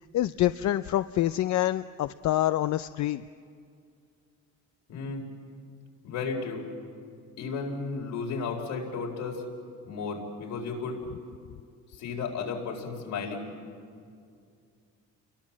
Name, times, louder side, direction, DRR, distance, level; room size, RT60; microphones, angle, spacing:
voice 1, 0.1-3.2, left 14 dB, 65° left, 12 dB, 0.5 m, -26 dB
voice 2, 4.9-5.3 6.0-6.6 7.4-9.4 9.9-11.0 11.9-13.5, left 4 dB, 85° left, 0 dB, 4.4 m, -34 dB
29.5 x 22.0 x 7.4 m, 2.3 s
cardioid pair, 90°, 30 cm